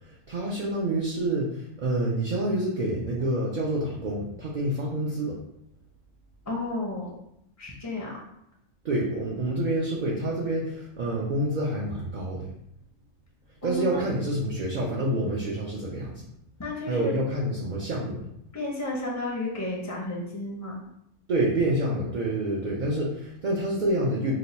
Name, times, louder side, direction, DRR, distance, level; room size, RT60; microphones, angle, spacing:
voice 1, 0.1-5.4 8.8-12.5 13.6-16.2 16.8-18.3 21.3-24.4, right 1 dB, 55° right, -5 dB, 0.5 m, -27 dB
voice 2, 6.5-7.1 7.6-8.2 13.6-14.0 16.6-17.1 18.5-20.8, left 1 dB, 20° left, -3 dB, 0.5 m, -32 dB
2.9 x 2.2 x 4.0 m, 0.76 s
omnidirectional pair, 1.4 m